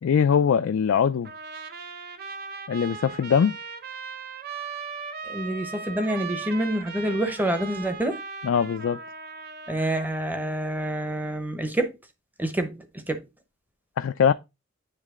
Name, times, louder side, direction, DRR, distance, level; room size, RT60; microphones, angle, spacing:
voice 1, 0.0-1.3 2.7-3.6 8.4-9.0 14.0-14.3, left 7 dB, 70° left, 0.3 m, -22 dB
Trumpet, 1.2-10.4, right 5 dB, 50° right, 0.7 m, -38 dB
voice 2, 5.2-8.2 9.7-12.0 12.4-13.3, right 1 dB, 10° right, 0.8 m, -27 dB
9.1 x 3.2 x 3.6 m
head